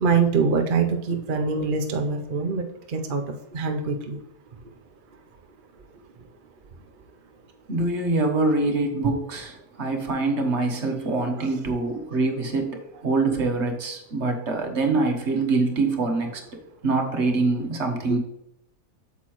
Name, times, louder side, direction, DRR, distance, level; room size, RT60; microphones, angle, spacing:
voice 1, 0.0-3.2 3.5-4.2 11.3-11.6 18.0-18.2, right 5 dB, 65° right, 4 dB, 0.5 m, -24 dB
voice 2, 7.7-16.4 16.8-18.2, right 3 dB, 45° right, 3 dB, 1.3 m, -24 dB
8.3 x 7.2 x 3.1 m, 0.79 s
omnidirectional pair, 1.8 m